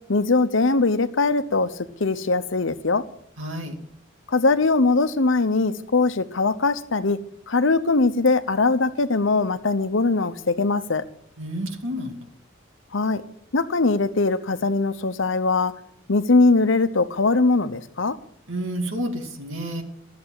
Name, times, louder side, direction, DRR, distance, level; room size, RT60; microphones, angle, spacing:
voice 1, 0.1-1.7 2.0-3.0 4.3-7.2 7.5-11.0 12.9-13.2 13.5-15.7 16.1-18.1, left 3 dB, 75° left, 12 dB, 0.9 m, -21 dB
voice 2, 3.4-3.7 11.4-12.2 18.5-19.8, equal, 85° right, 3 dB, 2.4 m, -30 dB
14.0 x 7.8 x 8.8 m, 0.67 s
head